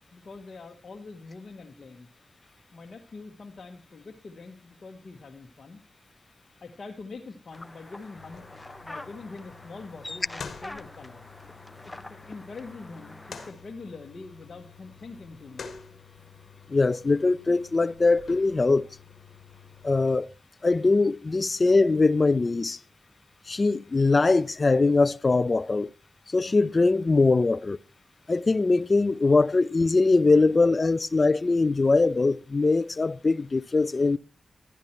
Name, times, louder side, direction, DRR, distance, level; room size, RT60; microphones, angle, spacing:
voice 1, 0.0-2.1 2.7-5.8 6.6-11.2 11.8-15.7, left 3 dB, 60° left, 1.3 m, -44 dB
sound 1, 7.5-13.5, left 2 dB, 20° left, 1.0 m, -45 dB
sound 2, 8.2-20.2, left 5 dB, 75° left, 1.5 m, -48 dB
voice 2, 16.7-18.9 19.8-20.3 20.6-22.8 23.5-25.9 26.3-27.8 28.3-34.2, left 3 dB, 45° left, 0.5 m, -22 dB
12.0 x 10.5 x 4.4 m
cardioid pair, 50°, 0 cm